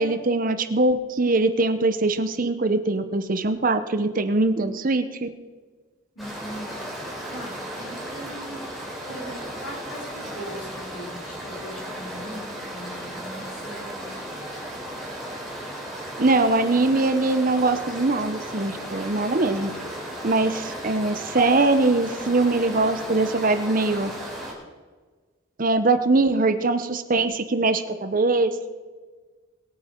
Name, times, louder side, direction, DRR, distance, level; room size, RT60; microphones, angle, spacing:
voice 1, 0.0-5.3 16.2-19.7 20.2-24.1 25.6-28.7, right 2 dB, 40° right, 11 dB, 0.7 m, -22 dB
voice 2, 6.2-8.6 9.1-14.2, equal, 70° left, -2 dB, 5.2 m, -40 dB
sound 1, 6.2-24.5, right 1 dB, ahead, 3.6 m, -35 dB
21.5 x 9.0 x 4.5 m, 1.4 s
head